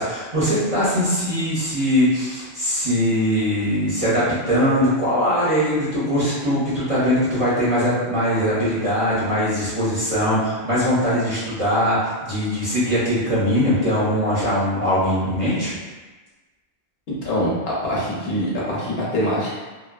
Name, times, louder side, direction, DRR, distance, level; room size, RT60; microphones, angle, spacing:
voice 1, 0.0-15.7, equal, 35° right, -10 dB, 0.8 m, -21 dB
voice 2, 17.2-19.5, equal, 70° left, -6 dB, 0.9 m, -24 dB
2.6 x 2.2 x 2.3 m, 1.3 s
omnidirectional pair, 1.1 m